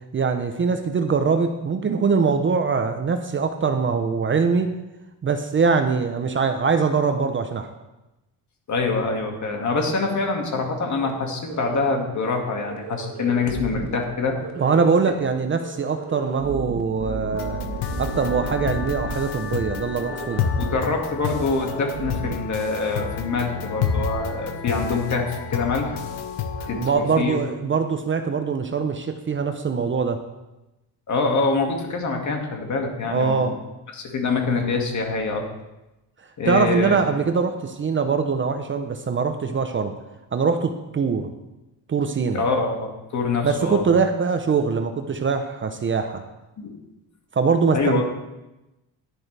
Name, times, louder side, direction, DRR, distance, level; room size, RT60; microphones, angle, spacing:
voice 1, 0.1-4.7 5.2-7.7 14.6-17.7 18.0-20.5 26.8-30.2 33.1-33.6 36.5-39.9 40.3-41.3 41.9-42.4 43.4-46.2 47.3-48.0, right 5 dB, 30° right, 7 dB, 0.7 m, -22 dB
voice 2, 8.7-14.4 20.6-26.0 26.7-27.4 31.1-33.5 33.9-35.4 36.4-37.0 42.3-43.8 46.6-46.8 47.7-48.0, left 4 dB, 45° left, 2 dB, 2.1 m, -25 dB
sound 1, 11.0-11.1 11.4-11.9 12.2-12.3 12.6-14.0 14.4-14.9 15.1-15.3 15.6-19.2 19.4-19.6 19.9-20.4 20.7-20.8 21.1-22.3, right 5 dB, 85° right, 1.5 m, -34 dB
sound 2, 17.3-26.9, left 6 dB, 85° left, 1.1 m, -29 dB
11.0 x 10.5 x 3.4 m, 1.0 s
cardioid pair, 125°, 39 cm